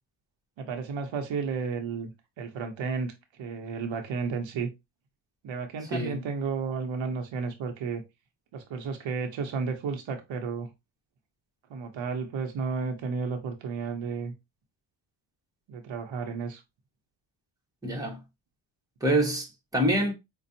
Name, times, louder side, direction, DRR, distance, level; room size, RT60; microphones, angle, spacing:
voice 1, 0.6-2.1 2.4-3.1 3.4-4.7 5.4-8.0 8.5-10.7 11.7-14.3 15.7-16.6, right 5 dB, 75° right, 0.9 m, -32 dB
voice 2, 17.8-18.2 19.0-20.1, right 1 dB, 10° right, 1.2 m, -26 dB
5.3 x 2.3 x 2.7 m
cardioid pair, 95°, 46 cm